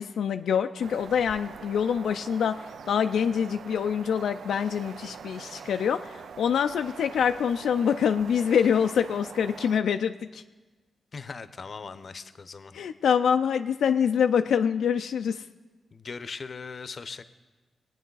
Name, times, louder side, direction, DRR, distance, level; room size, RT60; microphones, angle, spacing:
voice 1, 0.0-10.4 12.7-15.4, left 7 dB, 90° left, 0.3 m, -25 dB
sound 1, 0.8-9.8, right 7 dB, 80° right, 0.3 m, -44 dB
voice 2, 11.1-12.7 15.9-17.2, left 5 dB, 50° left, 0.6 m, -39 dB
21.0 x 9.0 x 3.9 m
cardioid pair, 85°, 0 cm